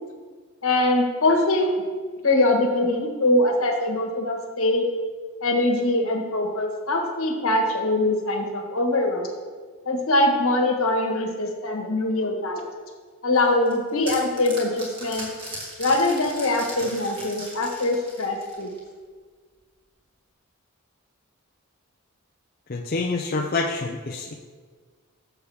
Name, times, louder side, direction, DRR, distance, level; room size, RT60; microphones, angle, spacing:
voice 1, 0.6-1.7 2.2-4.8 5.4-9.3 9.8-12.6 13.2-15.3 15.8-18.7, left 2 dB, 70° left, 2 dB, 1.4 m, -23 dB
sound 1, 13.4-18.9, right 1 dB, 25° right, 2.4 m, -38 dB
voice 2, 22.7-24.3, left 3 dB, 40° left, 0 dB, 0.5 m, -27 dB
12.5 x 6.9 x 3.5 m, 1.5 s
head